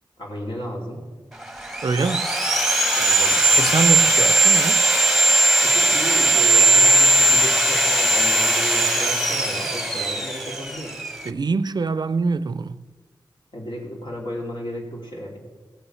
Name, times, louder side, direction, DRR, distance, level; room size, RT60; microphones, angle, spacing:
voice 1, 0.2-1.0 2.9-3.5 5.6-11.0 13.5-15.4, equal, 75° left, 2.8 m, -33 dB
Sawing, 1.4-11.3, right 2 dB, 5° right, 0.9 m, -18 dB
voice 2, 1.8-2.3 3.6-4.8 11.3-12.8, right 4 dB, 55° right, 0.4 m, -24 dB
16.5 x 7.0 x 5.6 m
wide cardioid pair, 70°, 8 cm